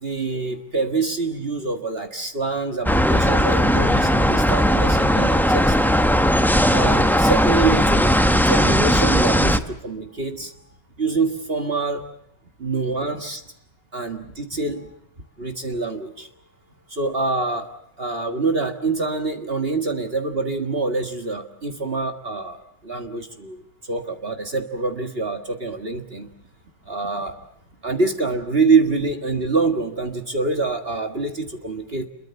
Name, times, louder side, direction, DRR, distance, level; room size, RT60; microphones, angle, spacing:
voice 1, 0.0-6.0 6.7-10.5 11.0-12.1 12.6-13.4 13.9-14.9 15.4-16.3 16.9-17.7 18.0-23.6 23.9-26.3 26.9-27.3 27.8-32.1, right 3 dB, 35° right, 6 dB, 1.8 m, -25 dB
sound 1, 2.8-9.6, equal, ahead, 0.6 m, -18 dB
27.5 x 22.5 x 7.0 m, 0.76 s
omnidirectional pair, 1.8 m